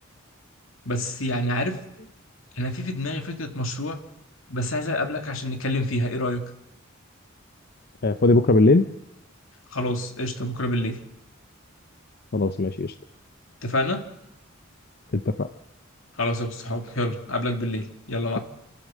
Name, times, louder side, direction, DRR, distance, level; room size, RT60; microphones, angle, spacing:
voice 1, 0.8-1.8 2.5-4.0 4.5-6.4 9.7-11.0 13.6-14.0 16.2-18.4, left 1 dB, 85° left, 5 dB, 2.4 m, -27 dB
voice 2, 8.0-8.9 12.3-12.9 15.1-15.5, left 2 dB, 50° left, 10 dB, 0.7 m, -19 dB
29.0 x 12.5 x 7.6 m, 0.89 s
head